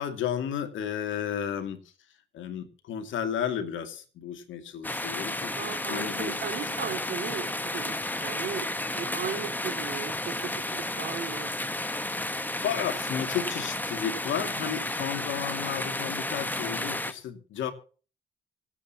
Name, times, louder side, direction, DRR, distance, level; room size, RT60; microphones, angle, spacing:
voice 1, 0.0-1.8 2.3-6.4 12.6-17.7, left 8 dB, 75° left, 8 dB, 2.5 m, -33 dB
sound 1, 4.8-17.1, left 1 dB, 10° left, 1.3 m, -32 dB
voice 2, 5.5-11.5, right 8 dB, 65° right, 3 dB, 2.7 m, -37 dB
25.5 x 8.6 x 3.0 m, 0.39 s
cardioid pair, 90°, 20 cm